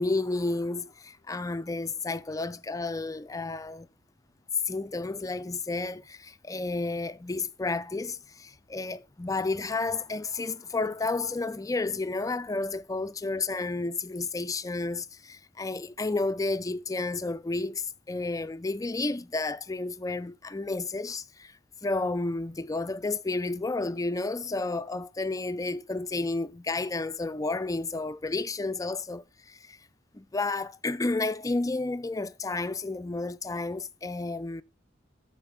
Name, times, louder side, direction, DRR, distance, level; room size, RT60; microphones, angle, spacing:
voice 1, 0.0-3.9 4.7-21.5 21.8-29.8 30.1-34.6, left 3 dB, 20° left, 0.4 m, -31 dB
13.0 x 4.5 x 3.5 m
head